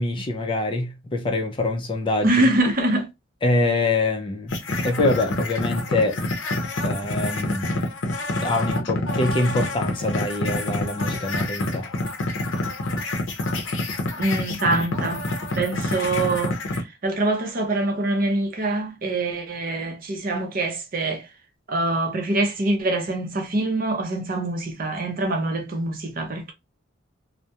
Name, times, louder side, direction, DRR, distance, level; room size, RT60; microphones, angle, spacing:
voice 1, 0.0-2.5 3.4-4.6 4.8-6.2 6.8-7.8 8.4-11.9, left 2 dB, 25° left, 0.4 m, -24 dB
voice 2, 2.2-3.1 14.2-15.2 15.5-21.3 21.7-26.5, right 2 dB, 45° right, 0.6 m, -24 dB
sound 1, 4.5-16.8, left 2 dB, 70° left, 0.6 m, -27 dB
2.3 x 2.1 x 2.7 m
head